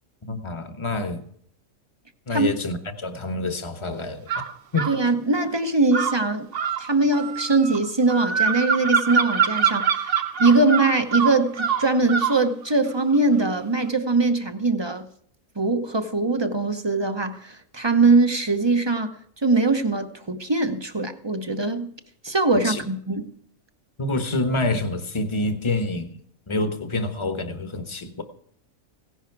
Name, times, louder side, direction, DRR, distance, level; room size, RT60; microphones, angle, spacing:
voice 1, 0.2-1.2 2.3-4.2 4.7-4.9 22.6-22.8 24.0-26.2 26.5-28.2, left 2 dB, 25° left, 1.1 m, -27 dB
sound 1, 4.3-5.0 5.9-12.4, right 6 dB, 50° right, 0.9 m, -24 dB
voice 2, 4.9-6.5 6.8-15.0 15.6-19.1 19.4-21.9 22.2-23.3, right 3 dB, 25° right, 0.8 m, -22 dB
16.5 x 11.0 x 4.7 m
omnidirectional pair, 1.4 m